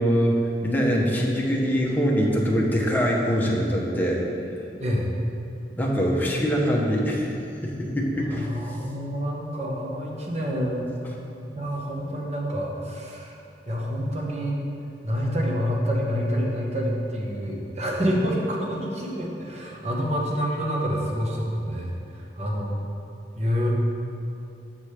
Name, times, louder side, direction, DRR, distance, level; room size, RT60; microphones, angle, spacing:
voice 1, 0.0-4.2 5.8-7.3 7.6-8.5, equal, 10° left, -3 dB, 0.9 m, -23 dB
voice 2, 8.3-10.9 11.5-13.4 13.7-14.6 15.0-22.8 23.4-23.7, equal, 40° right, -2 dB, 1.1 m, -27 dB
7.2 x 7.2 x 3.3 m, 2.7 s
head